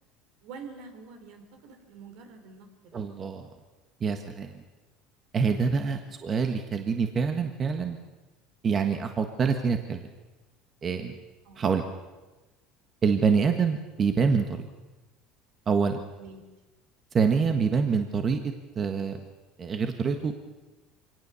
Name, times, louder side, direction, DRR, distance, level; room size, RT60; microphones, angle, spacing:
voice 1, 0.4-3.0 5.9-6.0 11.4-11.7 16.2-16.4, right 4 dB, 70° right, 7 dB, 3.5 m, -46 dB
voice 2, 2.9-3.5 4.0-4.5 5.3-8.0 8.6-10.0 10.8-11.1 11.6-11.8 13.0-14.6 15.7-16.0 17.1-19.2 19.6-20.3, right 5 dB, 30° right, 6 dB, 1.5 m, -26 dB
24.5 x 18.5 x 7.0 m, 1.2 s
supercardioid pair, 125°, 0 cm